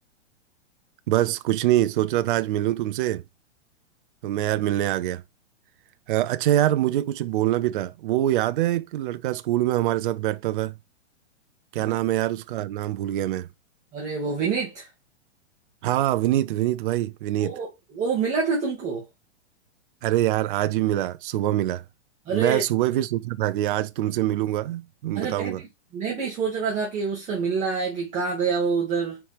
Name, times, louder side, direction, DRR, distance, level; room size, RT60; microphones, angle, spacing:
voice 1, 1.1-3.2 4.2-5.2 6.1-10.7 11.7-13.5 15.8-17.5 20.0-21.8 22.3-25.6, right 14 dB, 45° right, 0.5 m, -24 dB
voice 2, 13.9-14.9 17.4-17.7 17.9-19.1 22.3-22.6 25.2-25.7 25.9-29.2, right 5 dB, 20° right, 2.0 m, -26 dB
9.5 x 4.5 x 3.4 m
hypercardioid pair, 145°, 35 cm